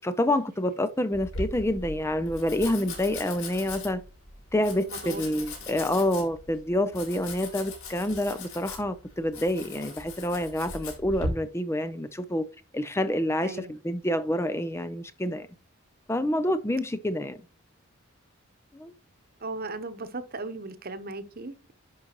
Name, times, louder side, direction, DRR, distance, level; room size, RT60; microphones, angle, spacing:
voice 1, 0.0-4.0 4.5-12.4 12.7-15.5 16.1-17.4 18.7-18.9, left 1 dB, 10° left, 0.4 m, -27 dB
Domestic sounds home sounds, 1.1-11.3, left 2 dB, 85° left, 4.3 m, -39 dB
voice 2, 4.9-6.0 13.4-13.8 19.4-21.7, right 3 dB, 45° right, 1.0 m, -38 dB
11.0 x 5.2 x 3.0 m
head